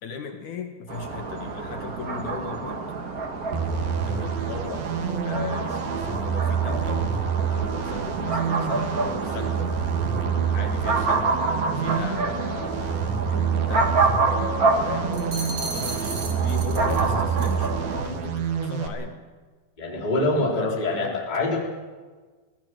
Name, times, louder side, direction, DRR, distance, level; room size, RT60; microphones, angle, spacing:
voice 1, 0.0-2.8 4.0-4.9 5.2-7.2 7.5-9.8 10.5-11.3 11.8-19.2 20.3-21.2, left 6 dB, 60° left, 5 dB, 2.3 m, -37 dB
sound 1, 0.9-18.1, right 3 dB, 85° right, 0.8 m, -28 dB
sound 2, 3.5-18.9, right 7 dB, 65° right, 3.3 m, -28 dB
sound 3, 15.1-17.1 17.4-17.7, right 3 dB, 40° right, 2.3 m, -35 dB
voice 2, 19.8-21.6, left 2 dB, 10° left, -1 dB, 3.4 m, -25 dB
22.5 x 16.5 x 7.9 m, 1.4 s
omnidirectional pair, 4.7 m